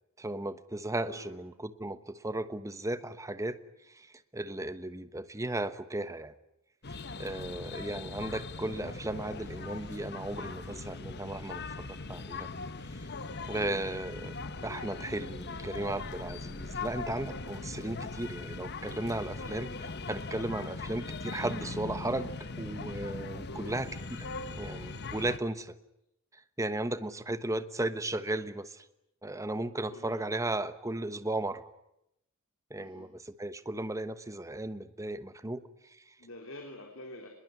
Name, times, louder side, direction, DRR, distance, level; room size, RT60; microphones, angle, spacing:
voice 1, 0.2-3.6 3.9-4.1 4.3-6.3 7.2-12.5 13.5-19.7 20.1-23.9 24.2-24.3 24.6-25.7 26.3-28.8 29.2-31.6 32.7-36.0, right 1 dB, 15° right, 11 dB, 1.1 m, -35 dB
voice 2, 1.1-1.4 7.3-7.6 13.3-13.7 19.4-19.6 23.5-23.7 29.9-30.2 32.8-33.1 36.2-37.3, left 1 dB, 70° left, 2 dB, 3.7 m, -47 dB
sound 1, 6.8-25.4, left 3 dB, 50° left, 1.3 m, -40 dB
24.5 x 21.5 x 9.6 m, 0.83 s
head